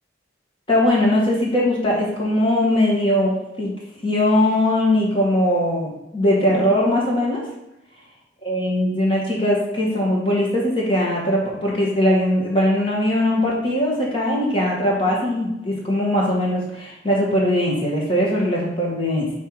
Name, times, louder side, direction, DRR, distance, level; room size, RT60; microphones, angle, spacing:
voice 1, 0.7-3.7 4.0-7.4 8.4-19.3, left 1 dB, 30° left, -4 dB, 1.9 m, -20 dB
5.9 x 4.6 x 4.8 m, 0.89 s
head